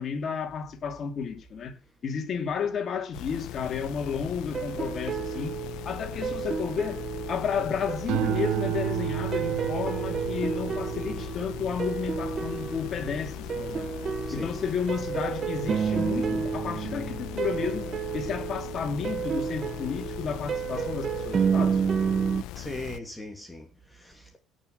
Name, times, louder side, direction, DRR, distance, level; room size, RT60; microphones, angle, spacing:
voice 1, 0.0-1.7 2.0-5.6 5.8-7.0 7.3-13.9 14.3-17.9 18.1-21.8, left 6 dB, 45° left, 3.2 m, -32 dB
sound 1, 3.1-23.0, left 13 dB, 80° left, 0.9 m, -39 dB
sound 2, 4.5-22.4, right 6 dB, 35° right, 1.0 m, -31 dB
sound 3, 8.1-14.6 15.1-15.6, right 15 dB, 75° right, 0.8 m, -33 dB
voice 2, 14.3-14.6 22.5-24.4, left 1 dB, 10° left, 2.8 m, -40 dB
17.0 x 6.2 x 8.0 m
cardioid pair, 125°, 0 cm